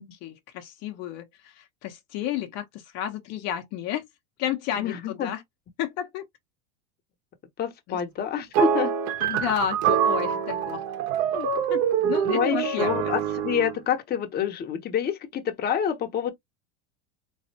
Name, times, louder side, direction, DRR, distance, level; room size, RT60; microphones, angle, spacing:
voice 1, 0.1-4.0 4.4-5.4 5.8-6.3 7.9-8.0 9.2-10.8 11.3-13.0, left 10 dB, 50° left, 1.1 m, -32 dB
voice 2, 4.8-5.3 7.6-8.9 12.0-16.3, left 8 dB, 30° left, 1.1 m, -27 dB
sound 1, 8.5-13.8, right 8 dB, 55° right, 1.5 m, -25 dB
4.0 x 3.2 x 2.9 m
supercardioid pair, 135°, 33 cm